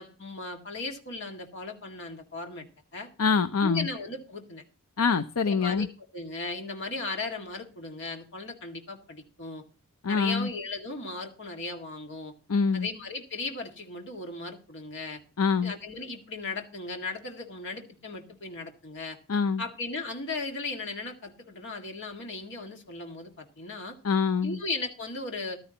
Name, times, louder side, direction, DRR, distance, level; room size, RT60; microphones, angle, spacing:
voice 1, 0.0-2.7 2.9-3.1 3.6-4.6 5.4-5.9 6.1-9.6 10.1-12.3 12.7-15.2 15.6-19.2 19.6-24.0 24.4-25.6, left 3 dB, 55° left, 3 dB, 2.0 m, -36 dB
voice 2, 3.2-3.9 5.0-5.9 10.0-10.5 12.5-12.9 15.4-15.7 19.3-19.6 24.0-24.6, left 5 dB, 75° left, 10 dB, 0.6 m, -25 dB
14.5 x 12.5 x 2.9 m, 0.34 s
head